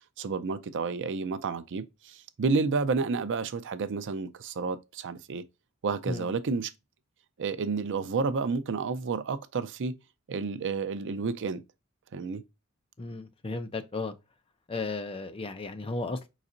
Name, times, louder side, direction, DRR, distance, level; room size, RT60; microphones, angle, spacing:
voice 1, 0.2-5.4 5.8-6.7 7.4-9.9 10.3-11.6 12.1-12.4, right 4 dB, 60° right, 0.5 m, -30 dB
voice 2, 13.0-14.1 14.7-16.3, left 3 dB, 25° left, 0.5 m, -34 dB
5.1 x 4.0 x 2.5 m
head